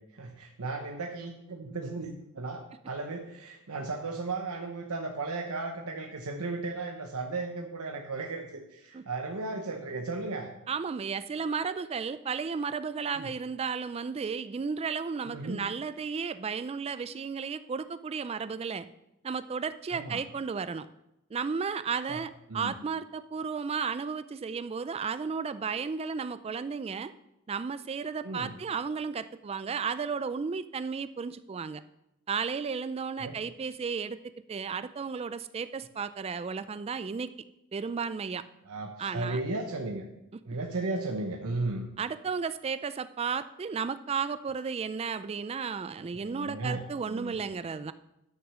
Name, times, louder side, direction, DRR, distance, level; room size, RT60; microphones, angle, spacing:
voice 1, 0.1-10.5 13.1-13.3 15.3-15.6 19.9-20.2 22.1-22.2 22.5-22.7 28.2-28.5 33.2-33.3 38.6-40.0 40.4-41.9 46.1-47.4, right 3 dB, 80° right, 2 dB, 1.0 m, -35 dB
voice 2, 10.7-18.9 19.2-20.9 21.3-27.1 27.5-31.8 32.3-34.2 34.5-37.3 37.7-38.4 39.0-39.4 42.0-47.9, right 5 dB, 25° right, 14 dB, 0.3 m, -33 dB
11.5 x 6.3 x 6.2 m, 0.88 s
head